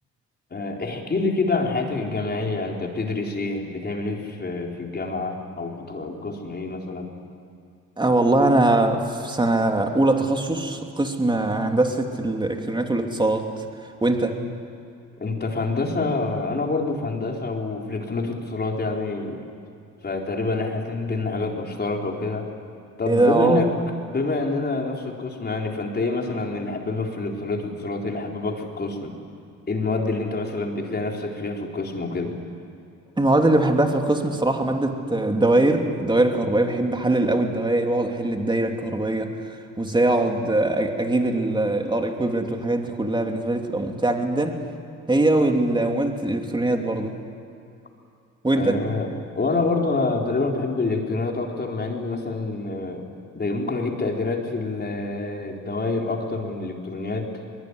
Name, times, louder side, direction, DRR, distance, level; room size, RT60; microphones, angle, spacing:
voice 1, 0.5-7.1 15.2-19.4 20.0-22.5 23.0-23.7 24.1-29.1 29.7-32.4 48.5-49.1 49.3-53.0 53.3-57.3, left 3 dB, 35° left, 1 dB, 4.3 m, -27 dB
voice 2, 8.0-13.5 14.0-14.4 23.1-23.6 33.2-39.3 39.8-44.6 45.1-47.1 48.4-48.8, right 2 dB, 15° right, 3 dB, 3.0 m, -22 dB
22.5 x 22.5 x 9.9 m, 2.5 s
cardioid pair, 90°, 30 cm